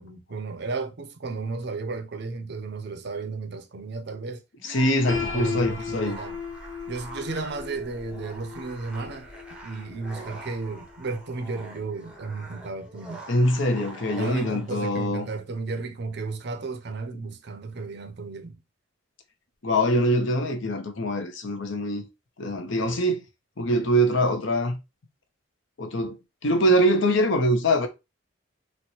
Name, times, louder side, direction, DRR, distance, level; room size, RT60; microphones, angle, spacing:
voice 1, 0.0-4.4 5.3-6.4 6.9-9.3 9.6-13.3 14.2-18.6, right 3 dB, 55° right, 0.5 m, -33 dB
voice 2, 4.6-6.2 13.3-15.3 19.6-22.1 22.4-23.2 23.6-24.8 25.8-26.2 26.4-27.9, equal, 65° left, 0.7 m, -23 dB
sound 1, 4.6-14.7, right 2 dB, 5° right, 0.6 m, -44 dB
Piano, 5.1-10.9, left 5 dB, 45° left, 1.3 m, -36 dB
4.1 x 2.1 x 2.8 m
head